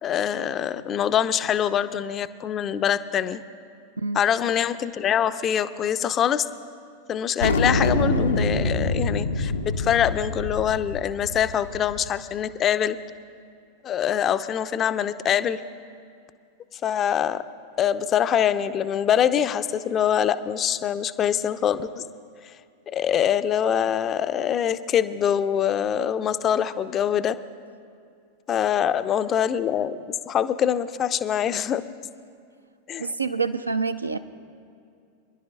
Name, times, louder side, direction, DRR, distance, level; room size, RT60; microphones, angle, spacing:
voice 1, 0.0-3.4 4.1-6.5 7.1-13.0 13.8-15.6 16.7-17.4 17.8-22.0 22.9-27.3 28.5-30.0 30.3-31.8 32.9-33.1, left 9 dB, 30° left, 12 dB, 0.4 m, -24 dB
sound 1, 7.4-12.1, left 2 dB, 75° left, 0.6 m, -25 dB
voice 2, 33.0-34.2, right 4 dB, 80° right, 10 dB, 0.4 m, -27 dB
28.0 x 11.0 x 2.3 m, 2.4 s
figure-of-eight pair, 90°, 0 cm